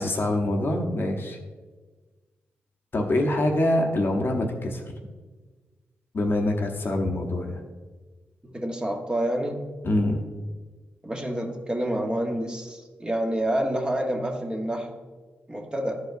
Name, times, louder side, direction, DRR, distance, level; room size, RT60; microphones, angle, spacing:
voice 1, 0.0-1.4 2.9-4.9 6.1-7.6 9.8-10.2, left 1 dB, 50° left, 2 dB, 1.0 m, -25 dB
voice 2, 8.4-9.6 11.0-14.9 15.5-16.0, right 1 dB, 20° right, 1 dB, 1.2 m, -28 dB
10.5 x 4.6 x 2.7 m, 1.3 s
supercardioid pair, 50°, 5 cm